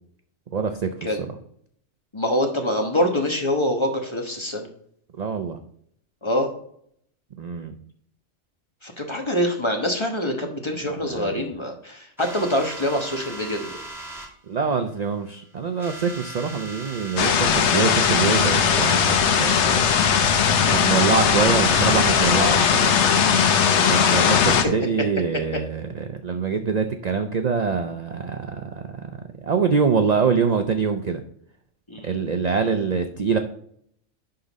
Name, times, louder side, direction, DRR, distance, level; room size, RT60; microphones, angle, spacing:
voice 1, 0.5-1.4 5.2-5.6 7.4-7.8 11.0-11.5 14.5-19.9 20.7-23.0 23.9-28.9 29.4-31.2 32.0-33.4, right 5 dB, 45° right, 6 dB, 0.5 m, -24 dB
voice 2, 2.1-4.7 6.2-6.5 8.8-13.7 31.9-32.1, left 1 dB, 25° left, 2 dB, 1.1 m, -25 dB
sound 1, 12.2-14.3 15.0-15.4 15.7-19.6 20.6-20.7 20.9-24.3, right 2 dB, ahead, 1.8 m, -39 dB
sound 2, 17.2-24.6, left 7 dB, 65° left, 1.0 m, -19 dB
11.0 x 3.9 x 4.0 m, 0.66 s
omnidirectional pair, 1.3 m